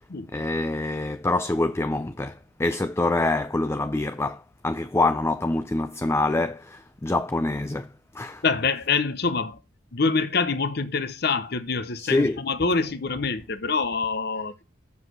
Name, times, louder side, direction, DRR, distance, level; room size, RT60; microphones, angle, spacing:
voice 1, 0.3-8.4 12.0-12.4, left 2 dB, 15° left, 0.4 m, -26 dB
voice 2, 8.4-9.6 9.9-14.6, left 4 dB, 55° left, 0.9 m, -25 dB
7.4 x 6.2 x 6.1 m
head